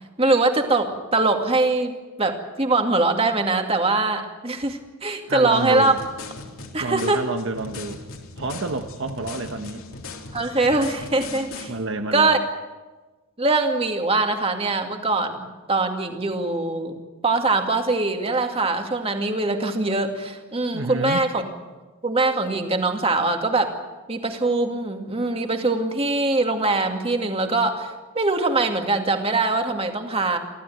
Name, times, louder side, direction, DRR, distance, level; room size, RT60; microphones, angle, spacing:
voice 1, 0.2-5.9 6.7-7.2 10.3-11.7 12.1-12.4 13.4-17.0 17.2-21.5 22.0-23.7 24.1-30.4, right 3 dB, 25° right, 4 dB, 2.3 m, -22 dB
voice 2, 5.3-6.0 6.8-8.0 8.4-9.8 11.7-12.4 20.7-21.2, right 2 dB, 60° right, 6 dB, 1.2 m, -29 dB
sound 1, 5.5-11.7, left 3 dB, 65° left, 3.4 m, -38 dB
25.0 x 16.0 x 9.3 m, 1.2 s
head